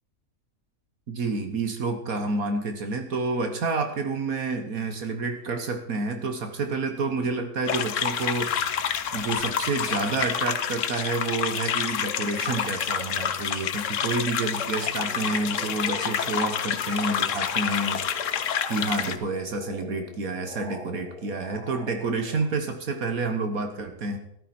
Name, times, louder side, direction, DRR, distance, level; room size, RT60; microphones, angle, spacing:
voice 1, 1.1-18.3 18.7-24.2, right 3 dB, 70° right, 6 dB, 1.6 m, -29 dB
sound 1, 7.7-19.2, left 8 dB, 60° left, 1.1 m, -28 dB
sound 2, 8.1-10.4 14.5-22.5, equal, 20° right, 2.8 m, -44 dB
14.0 x 12.0 x 4.3 m, 0.78 s
omnidirectional pair, 1.6 m